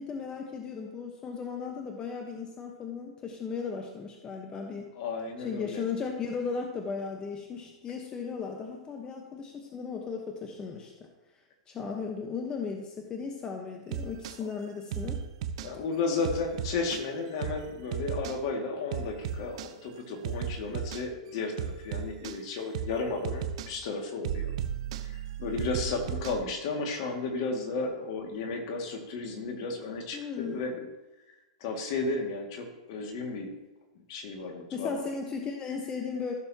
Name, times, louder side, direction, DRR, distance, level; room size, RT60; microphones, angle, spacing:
voice 1, 0.0-4.9 5.4-10.9 11.7-15.2 30.1-30.6 34.7-36.3, left 5 dB, 25° left, 2 dB, 1.2 m, -36 dB
voice 2, 5.0-5.8 15.6-24.5 25.0-30.8 31.6-33.5 34.1-35.0, left 3 dB, 55° left, 2 dB, 2.2 m, -33 dB
sound 1, 13.9-14.4 14.9-15.7 16.2-17.0 17.4-17.6 17.9-18.4 18.9-19.7 20.2-21.0 21.6-22.4 22.7-23.0 23.2-23.7 24.2-26.4, right 8 dB, 65° right, 0.8 m, -35 dB
15.0 x 6.8 x 2.9 m, 1.1 s
hypercardioid pair, 120°, 3 cm